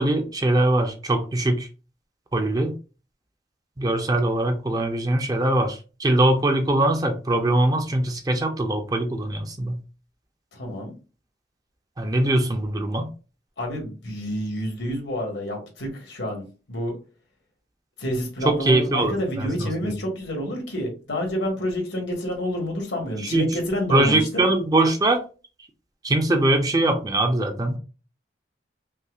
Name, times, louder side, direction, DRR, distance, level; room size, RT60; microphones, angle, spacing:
voice 1, 0.0-1.7 2.3-2.7 3.8-9.8 12.0-13.1 18.4-19.9 23.3-23.5 23.9-25.2 26.0-27.8, right 1 dB, 20° right, 0.5 m, -22 dB
voice 2, 10.5-10.9 13.6-17.0 18.0-24.3, equal, 85° left, 1.5 m, -28 dB
5.4 x 2.0 x 2.4 m
head